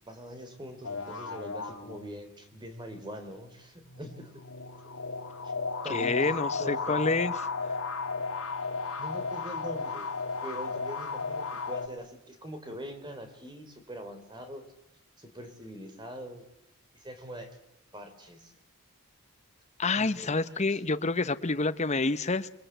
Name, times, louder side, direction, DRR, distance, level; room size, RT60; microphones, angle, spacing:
voice 1, 0.1-4.4 5.4-5.5 5.8-7.0 9.0-10.1 10.4-14.7 15.2-16.4 16.9-17.5 17.9-18.5 20.0-20.8, equal, 20° right, 7 dB, 3.4 m, -43 dB
sound 1, 0.8-2.5 3.8-11.9, left 4 dB, 80° left, 2.5 m, -34 dB
voice 2, 5.9-7.3 19.8-22.5, left 3 dB, 30° left, 12 dB, 0.9 m, -28 dB
27.5 x 21.0 x 8.0 m, 0.81 s
head